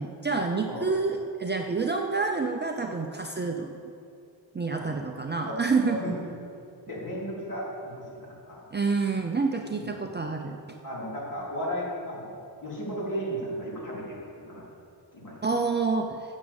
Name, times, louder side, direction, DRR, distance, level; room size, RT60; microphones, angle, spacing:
voice 1, 0.0-3.8 4.5-6.1 8.7-10.6 15.4-16.2, right 4 dB, 25° right, 3 dB, 0.6 m, -28 dB
voice 2, 6.9-8.7 9.6-10.0 10.8-14.6 15.1-15.5, equal, 45° left, -5 dB, 3.6 m, -35 dB
13.0 x 7.3 x 7.1 m, 2.5 s
wide cardioid pair, 140°, 45 cm